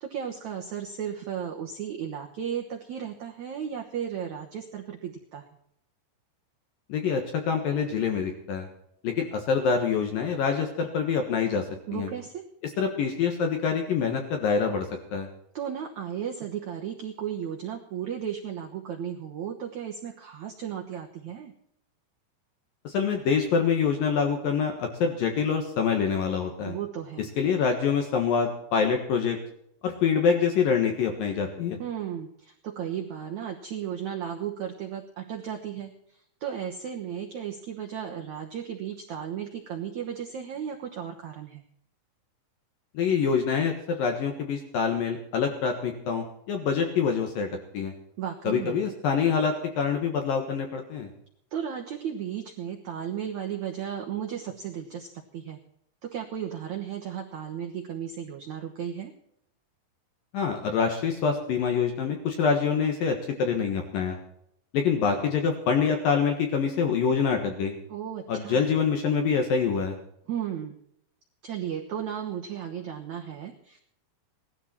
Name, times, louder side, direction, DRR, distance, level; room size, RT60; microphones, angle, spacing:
voice 1, 0.0-5.4 11.9-12.4 15.5-21.5 26.6-27.3 31.8-41.6 48.2-48.8 51.5-55.6 56.0-59.1 67.9-68.6 70.3-70.8 71.4-73.8, right 9 dB, 75° right, 2 dB, 1.7 m, -35 dB
voice 2, 6.9-8.7 9.0-11.6 11.9-12.1 12.8-14.9 15.1-15.3 22.8-26.8 27.4-29.4 29.8-31.8 42.9-47.5 47.7-47.9 48.4-51.1 60.3-64.2 64.7-67.7 68.3-70.0, left 6 dB, 65° left, 4 dB, 2.8 m, -25 dB
18.0 x 12.5 x 4.4 m, 0.73 s
omnidirectional pair, 5.1 m